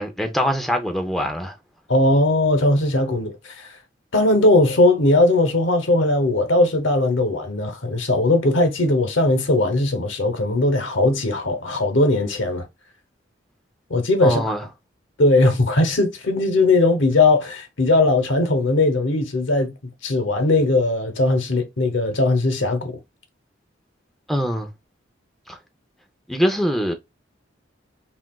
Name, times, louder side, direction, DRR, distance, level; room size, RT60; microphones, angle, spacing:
voice 1, 0.0-1.6 14.2-14.6 24.3-24.7 25.5-25.6 26.3-26.9, equal, ahead, 0.5 m, -23 dB
voice 2, 1.9-3.7 4.1-12.6 13.9-14.4 15.2-19.7 20.0-23.0, left 2 dB, 80° left, 0.9 m, -19 dB
5.7 x 2.4 x 2.3 m
head